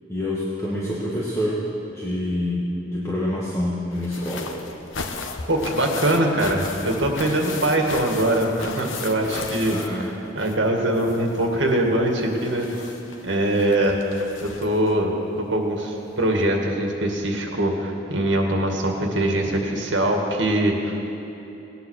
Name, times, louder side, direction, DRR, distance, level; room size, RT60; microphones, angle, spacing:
voice 1, 0.1-1.6 1.9-4.5 9.7-10.1, left 1 dB, 15° left, -7 dB, 1.7 m, -26 dB
sound 1, 3.9-10.7 10.9-14.9 16.0-16.1 16.4-16.5, left 4 dB, 90° left, 1.0 m, -36 dB
voice 2, 5.5-9.8 10.4-12.8 13.2-14.0 14.4-21.0, right 1 dB, 70° right, 1 dB, 2.1 m, -22 dB
19.0 x 9.6 x 6.5 m, 3.0 s
head